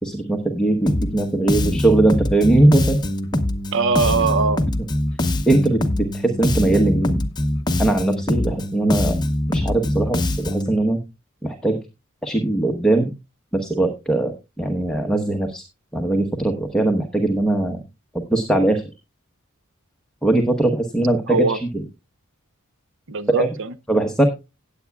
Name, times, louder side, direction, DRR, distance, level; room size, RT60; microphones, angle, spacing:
voice 1, 0.0-3.0 5.4-7.2 7.8-9.2 9.5-11.0 11.4-11.8 12.2-13.1 13.5-15.6 15.9-17.8 18.3-18.8 20.2-21.8 23.4-23.5 23.9-24.2, right 2 dB, 5° left, 1.0 m, -20 dB
Bass guitar, 0.9-10.7, left 1 dB, 20° left, 0.8 m, -23 dB
voice 2, 3.7-4.7 21.3-21.6 23.1-23.7, right 4 dB, 65° right, 0.8 m, -21 dB
17.5 x 8.3 x 2.3 m
head